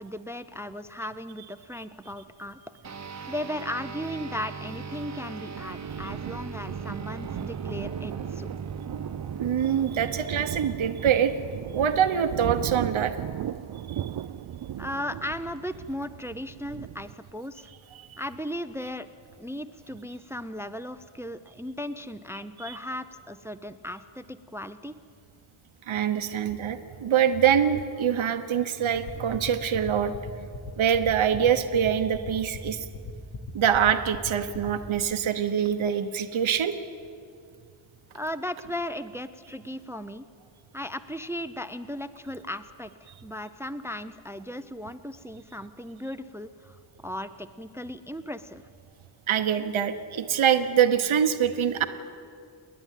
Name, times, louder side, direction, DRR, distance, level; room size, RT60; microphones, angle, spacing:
voice 1, 0.0-2.6 3.3-8.5 14.8-17.7 18.2-19.1 19.4-24.9 38.1-40.2 40.7-48.6, left 1 dB, 5° right, 12 dB, 0.6 m, -36 dB
sound 1, 2.8-12.6, right 5 dB, 35° right, 1.0 m, -40 dB
Thunder, 4.8-17.1, right 11 dB, 55° right, 0.5 m, -37 dB
voice 2, 9.4-11.3 11.7-13.2 13.9-14.1 18.0-18.2 22.6-22.8 25.9-30.5 30.8-32.9 33.5-36.7 49.3-51.9, right 8 dB, 80° right, 8 dB, 1.1 m, -24 dB
sound 2, 28.9-34.9, left 4 dB, 70° left, 2.4 m, -37 dB
29.0 x 10.5 x 9.2 m, 2.3 s
wide cardioid pair, 95°, 47 cm